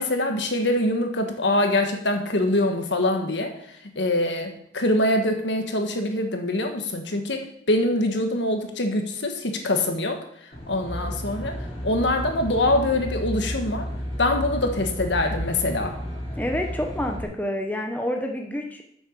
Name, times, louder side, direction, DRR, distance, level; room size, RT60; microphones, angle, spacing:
voice 1, 0.0-3.5 3.9-10.2 10.7-11.6 11.8-13.9 14.2-15.9, left 1 dB, 75° left, 4 dB, 1.5 m, -24 dB
Aircraft, 10.5-17.2, equal, 30° left, 2.7 m, -32 dB
voice 2, 16.4-18.8, left 1 dB, 10° left, 2 dB, 0.9 m, -28 dB
8.1 x 6.7 x 6.7 m, 0.71 s
head